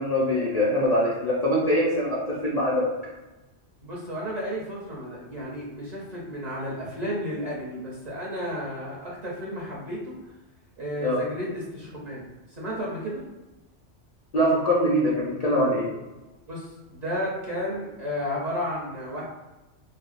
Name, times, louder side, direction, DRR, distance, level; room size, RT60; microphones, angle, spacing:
voice 1, 0.0-2.9 11.0-11.2 14.3-15.9, equal, 50° left, -7 dB, 0.5 m, -23 dB
voice 2, 3.8-10.2 10.8-13.3 16.5-19.2, equal, 40° right, -5 dB, 0.7 m, -33 dB
3.4 x 2.2 x 2.5 m, 1.0 s
omnidirectional pair, 1.2 m